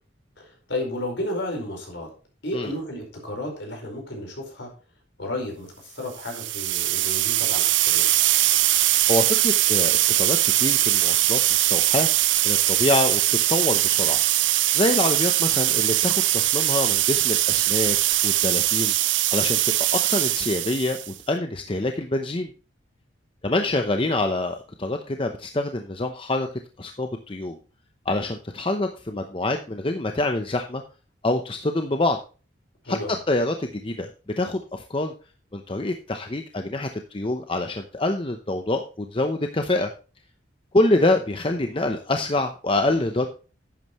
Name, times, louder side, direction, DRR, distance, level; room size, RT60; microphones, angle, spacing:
voice 1, 0.4-2.1 2.4-4.7 5.2-8.1 32.8-33.2, left 1 dB, 65° left, 1 dB, 4.8 m, -32 dB
sound 1, 6.2-21.1, right 15 dB, 70° right, 0.5 m, -21 dB
voice 2, 9.1-12.1 12.4-14.2 14.7-18.0 18.2-18.9 19.3-19.6 19.9-22.5 23.4-26.5 26.8-27.6 28.1-30.8 31.2-32.2 32.9-34.1 34.4-35.1 35.5-39.9 40.7-43.3, left 2 dB, 25° left, 5 dB, 0.8 m, -26 dB
11.0 x 9.0 x 3.1 m, 0.35 s
head